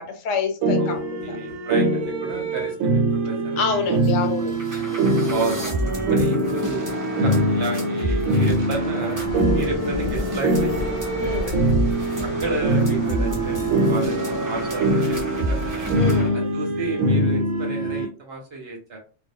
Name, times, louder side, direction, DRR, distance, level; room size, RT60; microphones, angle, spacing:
voice 1, 0.0-1.4 3.6-4.5 11.2-11.5 16.0-16.5, left 6 dB, 75° left, 1.0 m, -27 dB
sound 1, 0.6-18.1, right 2 dB, 90° right, 1.0 m, -23 dB
voice 2, 1.2-4.5 5.3-5.6 6.1-9.2 9.5-10.9 11.2-11.5 12.2-15.8 16.3-19.0, right 3 dB, 55° right, 0.8 m, -32 dB
sound 2, 4.0-4.1 4.4-16.3, equal, 25° right, 0.4 m, -29 dB
sound 3, 9.3-16.2, left 1 dB, 50° left, 0.7 m, -35 dB
2.2 x 2.1 x 2.6 m
omnidirectional pair, 1.3 m